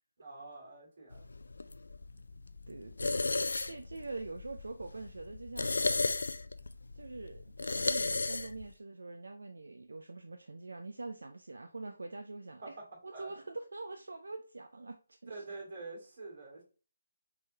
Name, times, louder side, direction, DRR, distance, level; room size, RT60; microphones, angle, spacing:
voice 1, 0.2-1.3 2.1-2.2 13.1-13.3 15.3-16.6, right 3 dB, 45° right, -2 dB, 2.6 m, -46 dB
sound 1, 1.1-8.7, left 3 dB, 70° left, 0.3 m, -35 dB
voice 2, 2.7-3.2 3.6-5.7 6.9-12.8 13.0-15.5, right 3 dB, 70° right, 6 dB, 0.4 m, -44 dB
5.3 x 3.4 x 2.8 m, 0.36 s
figure-of-eight pair, 150°, 0 cm